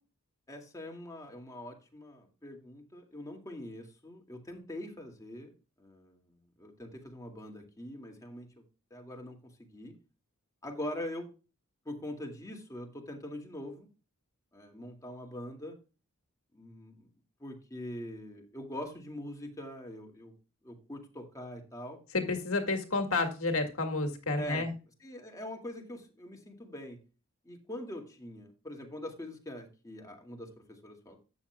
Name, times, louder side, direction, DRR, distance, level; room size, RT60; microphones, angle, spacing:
voice 1, 0.5-5.5 5.8-6.3 6.6-8.6 8.9-9.9 10.6-11.3 11.9-13.9 14.5-15.8 16.5-17.1 17.4-20.3 20.6-22.0 24.4-24.7 25.0-27.0 27.4-31.2, left 1 dB, 15° left, 2 dB, 2.2 m, -43 dB
voice 2, 22.1-24.7, left 3 dB, 70° left, 5 dB, 2.0 m, -30 dB
13.0 x 9.0 x 2.2 m, 0.32 s
head